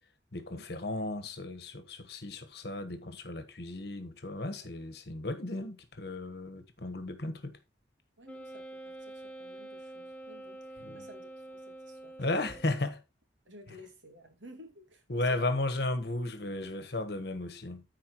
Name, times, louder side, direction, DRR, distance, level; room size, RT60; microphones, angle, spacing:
voice 1, 0.3-7.6 10.8-11.0 12.2-13.0 15.1-17.8, left 2 dB, 55° left, 1.3 m, -35 dB
Wind instrument woodwind instrument, 8.2-12.9, right 2 dB, 10° left, 0.9 m, -46 dB
voice 2, 8.2-12.6 13.5-15.6, equal, 80° right, 2.3 m, -53 dB
14.0 x 4.7 x 3.0 m
head